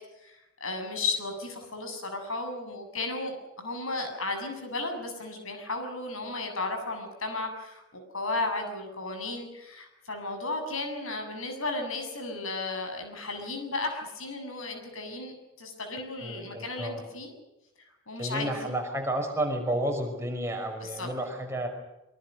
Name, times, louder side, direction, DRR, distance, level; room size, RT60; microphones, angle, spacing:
voice 1, 0.2-17.3 18.1-18.8 20.8-21.1, left 3 dB, 70° left, 5 dB, 7.4 m, -34 dB
voice 2, 16.2-17.0 18.2-21.7, right 1 dB, 10° right, 2 dB, 5.5 m, -31 dB
25.5 x 24.5 x 6.5 m, 0.94 s
head